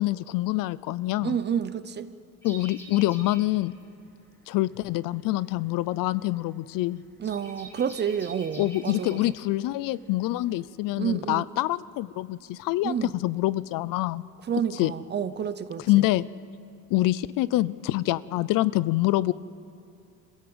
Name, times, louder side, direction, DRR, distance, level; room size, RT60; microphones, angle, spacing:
voice 1, 0.0-1.4 2.4-3.7 4.5-7.0 8.6-14.3 14.8-14.9 15.9-16.3 16.9-19.3, left 17 dB, 65° left, 18 dB, 0.6 m, -26 dB
voice 2, 1.2-2.1 7.2-9.2 11.0-11.4 12.8-13.1 14.5-16.0, right 8 dB, 30° right, 13 dB, 0.7 m, -29 dB
sound 1, 2.4-10.6, right 2 dB, 5° left, 3.4 m, -48 dB
25.5 x 16.0 x 7.9 m, 2.4 s
cardioid pair, 145°, 36 cm